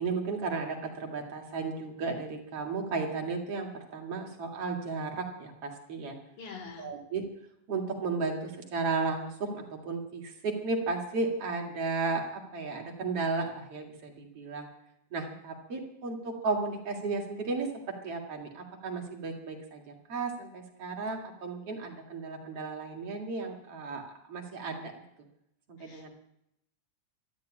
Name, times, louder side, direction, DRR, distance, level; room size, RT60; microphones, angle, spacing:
voice 1, 0.0-6.2 6.8-7.3 7.7-12.2 12.5-14.7 15.1-24.9 25.7-26.1, right 4 dB, 55° right, 2 dB, 3.0 m, -34 dB
voice 2, 6.4-6.9 25.8-26.1, left 5 dB, 80° left, 1 dB, 4.2 m, -45 dB
12.5 x 11.5 x 8.7 m, 0.78 s
omnidirectional pair, 3.4 m